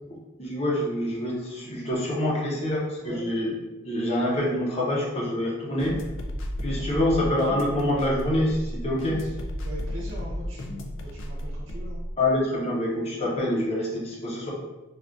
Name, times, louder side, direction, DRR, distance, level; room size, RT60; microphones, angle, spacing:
voice 1, 0.4-3.5 3.8-6.0 6.6-9.2 12.2-14.5, left 1 dB, 30° left, -4 dB, 0.7 m, -26 dB
sound 1, 5.8-12.1, equal, 65° left, 0.4 m, -33 dB
voice 2, 9.1-9.4 9.6-12.0, equal, 65° right, -5 dB, 0.8 m, -41 dB
3.5 x 2.3 x 2.5 m, 1.1 s
head